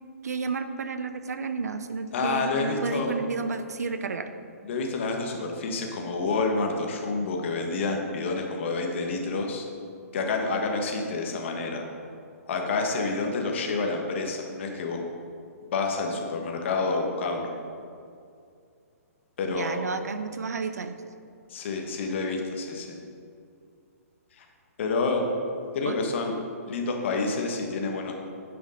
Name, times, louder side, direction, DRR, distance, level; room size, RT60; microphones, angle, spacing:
voice 1, 0.2-4.3 19.5-21.0 25.8-26.0, right 4 dB, 85° right, 9 dB, 0.7 m, -31 dB
voice 2, 2.1-3.1 4.6-9.7 10.1-11.9 12.5-15.0 15.7-17.5 19.4-19.8 21.5-23.0 24.4-24.5 24.8-25.2 25.7-26.3 26.7-28.1, left 3 dB, 50° left, 2 dB, 1.5 m, -28 dB
9.6 x 5.1 x 5.7 m, 2.4 s
hypercardioid pair, 160°, 8 cm